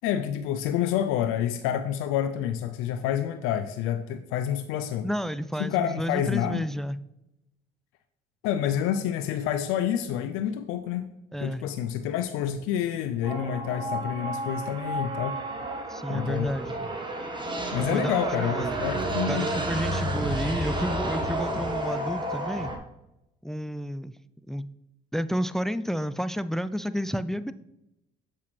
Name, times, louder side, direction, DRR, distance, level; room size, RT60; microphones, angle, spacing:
voice 1, 0.0-5.1 5.6-6.6 8.4-11.1 11.4-15.4 16.1-16.5 17.7-19.5, left 10 dB, 80° left, 9 dB, 0.5 m, -28 dB
voice 2, 5.0-7.0 11.3-11.7 15.9-16.8 17.7-18.8 19.3-22.7 23.4-24.1 24.5-24.7 25.1-27.5, equal, ahead, 14 dB, 0.3 m, -31 dB
sound 1, 13.2-22.8, right 1 dB, 20° right, 1.4 m, -31 dB
7.4 x 5.6 x 3.2 m, 0.89 s
supercardioid pair, 65°, 21 cm